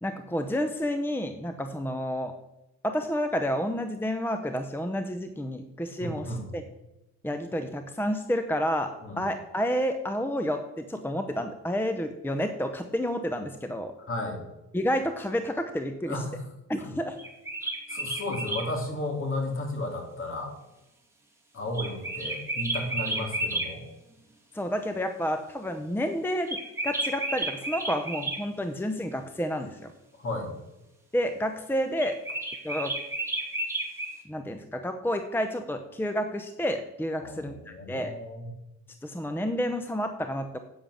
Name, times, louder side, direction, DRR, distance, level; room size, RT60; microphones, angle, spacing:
voice 1, 0.0-2.3 2.8-6.6 7.2-13.9 14.7-16.2 16.7-17.2 24.5-29.9 31.1-32.2 32.6-33.0 34.3-38.1 39.0-40.6, equal, 5° left, 7 dB, 0.8 m, -30 dB
voice 2, 6.0-6.5 9.0-9.2 14.1-14.4 16.1-16.5 16.8-16.9 17.9-20.5 21.5-23.8 30.2-30.5 37.2-38.5, left 1 dB, 45° left, 1 dB, 3.2 m, -33 dB
sound 1, 17.2-18.7 21.7-23.7 26.5-28.4 32.0-34.1, right 2 dB, 10° right, 2.6 m, -32 dB
8.8 x 7.6 x 6.4 m, 0.94 s
cardioid pair, 90°, 30 cm